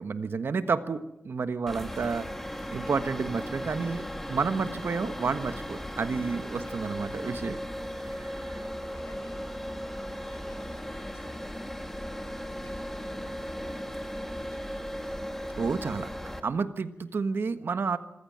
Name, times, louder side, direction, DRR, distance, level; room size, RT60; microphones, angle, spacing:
voice 1, 0.0-2.3 2.7-4.0 4.3-7.6 8.5-8.6 15.6-16.1 16.4-18.0, right 5 dB, 65° right, 10 dB, 1.4 m, -30 dB
sound 1, 1.7-16.4, equal, 5° left, 2.1 m, -37 dB
voice 2, 6.5-7.0 7.7-9.7 10.1-15.3 16.9-17.2, left 2 dB, 85° left, 4 dB, 6.3 m, -57 dB
26.0 x 15.0 x 8.8 m, 0.91 s
wide cardioid pair, 120°, 4 cm